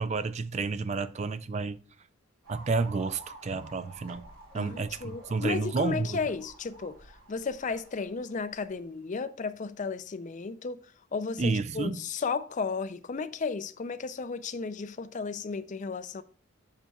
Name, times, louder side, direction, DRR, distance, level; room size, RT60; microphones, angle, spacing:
voice 1, 0.0-1.8 2.5-4.2 4.5-6.2 11.4-12.0, right 4 dB, 30° right, 0.4 m, -30 dB
sound 1, 2.4-8.8, right 2 dB, 80° right, 2.6 m, -51 dB
voice 2, 4.5-7.0 7.3-10.8 11.1-16.2, left 4 dB, 35° left, 0.4 m, -34 dB
8.9 x 6.6 x 2.3 m
head